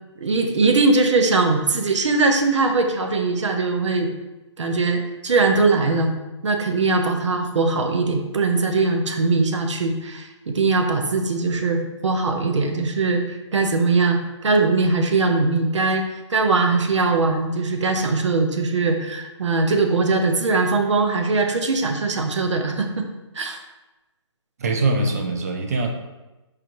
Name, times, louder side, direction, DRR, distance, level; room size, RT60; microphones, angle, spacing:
voice 1, 0.2-4.1 4.6-6.1 6.4-22.9 23.3-23.6, right 3 dB, 75° right, 4 dB, 0.8 m, -21 dB
voice 2, 24.6-25.9, right 2 dB, 30° right, 3 dB, 0.5 m, -22 dB
5.0 x 3.5 x 3.0 m, 1.1 s
hypercardioid pair, 165°, 16 cm